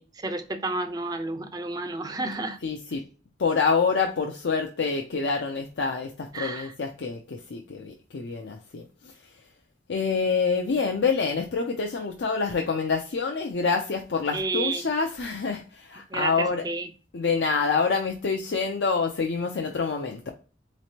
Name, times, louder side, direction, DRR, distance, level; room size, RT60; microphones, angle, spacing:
voice 1, 0.0-2.6 6.3-6.7 14.3-14.8 16.1-16.9, right 3 dB, 20° right, 0.4 m, -31 dB
voice 2, 2.6-3.0 3.4-9.4 9.9-16.6 17.1-20.3, left 5 dB, 80° left, 0.5 m, -27 dB
4.2 x 3.1 x 2.7 m
head